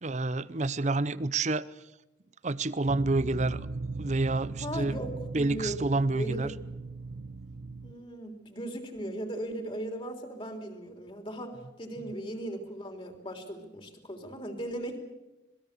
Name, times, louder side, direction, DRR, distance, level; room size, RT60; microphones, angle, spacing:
voice 1, 0.0-1.7 2.4-3.7 4.0-5.0 5.3-6.5, right 2 dB, 40° right, 18 dB, 0.7 m, -28 dB
sound 1, 2.9-7.9, right 3 dB, 65° right, 1.2 m, -38 dB
voice 2, 4.6-6.5 7.8-15.0, right 1 dB, 30° left, 4 dB, 3.4 m, -38 dB
26.5 x 20.5 x 6.8 m, 0.97 s
head